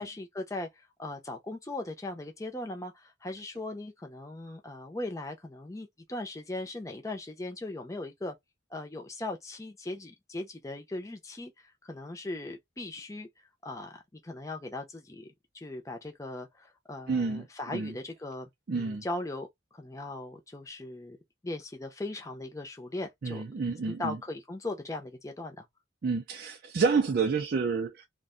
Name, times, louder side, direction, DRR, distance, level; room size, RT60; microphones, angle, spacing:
voice 1, 0.0-8.4 8.7-19.5 19.7-21.2 21.4-25.7, left 2 dB, 15° left, 0.5 m, -39 dB
voice 2, 17.1-17.4 17.7-17.9 18.7-19.0 23.2-24.2 26.0-28.0, right 4 dB, 50° right, 0.4 m, -29 dB
2.4 x 2.2 x 3.6 m
head